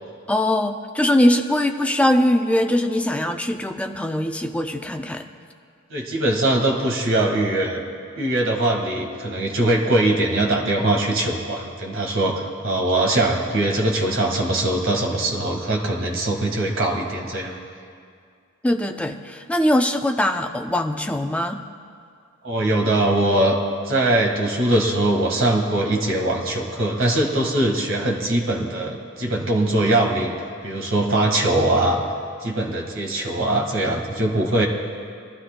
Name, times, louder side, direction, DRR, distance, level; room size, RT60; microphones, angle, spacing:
voice 1, 0.3-5.3 18.6-21.6, left 1 dB, 5° left, 5 dB, 0.4 m, -21 dB
voice 2, 5.9-7.8 8.2-17.6 22.4-23.6 23.8-30.3 30.6-32.0 32.4-34.7, right 1 dB, 65° right, 0 dB, 1.6 m, -21 dB
22.5 x 12.5 x 2.2 m, 2.2 s
head